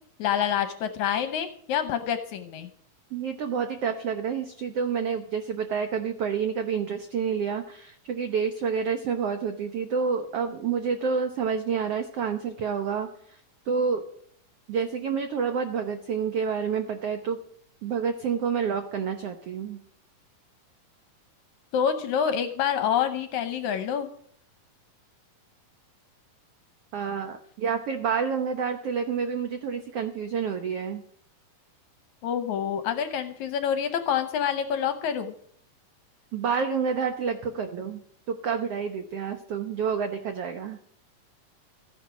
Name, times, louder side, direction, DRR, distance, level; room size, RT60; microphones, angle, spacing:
voice 1, 0.2-2.7 21.7-24.1 32.2-35.3, left 8 dB, 75° left, 9 dB, 1.8 m, -27 dB
voice 2, 3.1-13.1 13.7-14.0 14.7-17.4 17.8-19.8 26.9-31.0 36.3-38.0 38.3-40.8, right 6 dB, 75° right, 7 dB, 1.4 m, -28 dB
14.5 x 10.0 x 6.1 m, 0.64 s
omnidirectional pair, 4.0 m